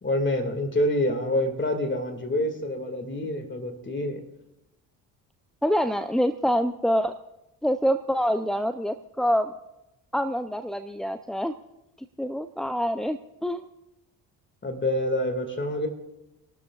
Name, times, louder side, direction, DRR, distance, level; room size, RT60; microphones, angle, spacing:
voice 1, 0.0-4.2 14.6-15.9, left 1 dB, 25° left, 6 dB, 2.1 m, -27 dB
voice 2, 5.6-7.1 7.6-9.5 10.1-11.5 12.2-13.7, equal, ahead, 11 dB, 0.4 m, -26 dB
29.5 x 13.0 x 2.4 m, 0.94 s
figure-of-eight pair, 45°, 48 cm